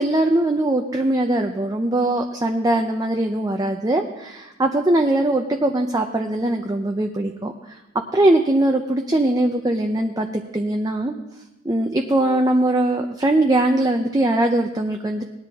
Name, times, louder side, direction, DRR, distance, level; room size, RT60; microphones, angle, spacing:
voice 1, 0.0-7.8 8.1-11.2 11.6-15.3, right 1 dB, 20° right, 3 dB, 0.7 m, -21 dB
18.5 x 10.0 x 3.6 m, 0.99 s
head